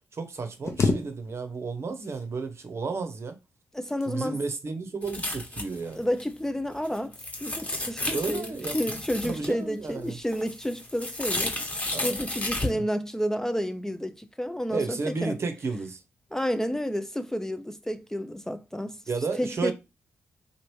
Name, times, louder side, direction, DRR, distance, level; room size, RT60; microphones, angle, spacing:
voice 1, 0.1-3.4 4.1-6.0 8.1-8.8 9.2-10.2 11.9-12.1 12.6-12.8 14.7-16.0 19.1-19.7, right 4 dB, 50° right, 0.7 m, -32 dB
sound 1, 0.6-1.7 2.0-2.7 3.6-4.4 5.1-5.4 5.8-6.1, left 4 dB, 55° left, 0.7 m, -30 dB
voice 2, 3.7-4.4 5.9-11.5 12.0-15.4 16.3-19.0 19.4-19.7, equal, 10° left, 0.4 m, -30 dB
sound 2, 5.0-5.9 6.2-6.3 6.7-9.5 9.9-12.7, left 1 dB, 25° left, 1.1 m, -32 dB
3.0 x 2.5 x 3.0 m
hypercardioid pair, 40°, 6 cm